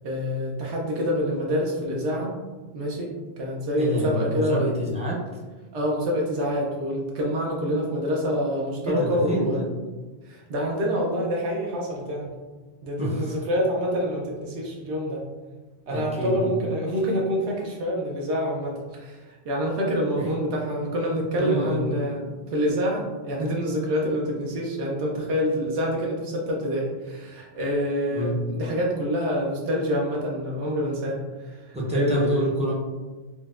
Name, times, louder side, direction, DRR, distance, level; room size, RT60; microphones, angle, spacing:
voice 1, 0.0-2.3 2.7-4.7 5.7-9.6 10.3-12.3 12.8-15.2 15.9-32.5, equal, 75° right, -2 dB, 0.9 m, -27 dB
voice 2, 3.8-5.2 8.8-9.7 13.0-13.4 15.9-16.6 20.2-20.3 21.4-21.9 28.1-28.4 31.7-32.7, right 1 dB, 10° right, -7 dB, 0.4 m, -27 dB
4.2 x 2.1 x 2.3 m, 1.3 s
omnidirectional pair, 1.2 m